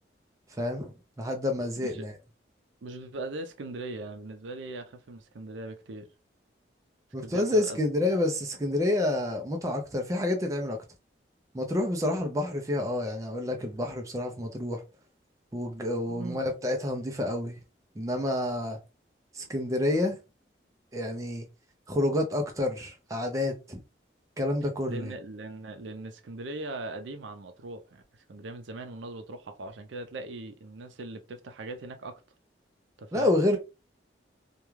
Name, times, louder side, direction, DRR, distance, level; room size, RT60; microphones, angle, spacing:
voice 1, 0.6-2.1 7.1-10.8 11.5-14.8 15.5-17.6 18.0-18.8 19.3-20.2 20.9-21.5 21.9-23.8 24.4-25.1 33.1-33.6, left 1 dB, 15° right, 0.4 m, -28 dB
voice 2, 1.8-2.1 2.8-6.1 7.2-7.8 16.1-16.4 19.4-19.5 24.9-28.0 28.3-32.2 33.0-33.4, right 2 dB, 85° right, 0.5 m, -40 dB
2.3 x 2.2 x 3.0 m
head